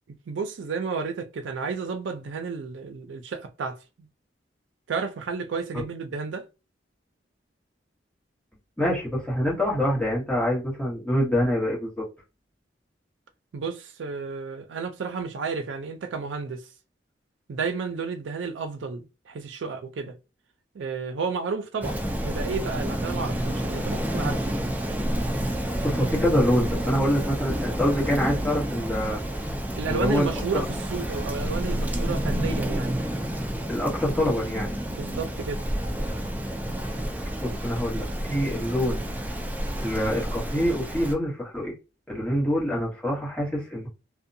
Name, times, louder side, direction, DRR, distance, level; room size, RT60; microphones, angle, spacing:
voice 1, 0.1-3.8 4.9-6.5 13.5-16.6 17.5-20.2 20.7-24.4 29.8-32.9 34.9-35.6, right 5 dB, 85° right, 0.4 m, -32 dB
voice 2, 8.8-12.0 25.8-29.2 29.9-30.6 33.7-34.7 37.4-39.0 39.8-41.7 42.1-43.9, equal, 5° left, 1.2 m, -25 dB
Rain, 21.8-41.1, equal, 10° right, 0.3 m, -29 dB
2.6 x 2.1 x 2.6 m
head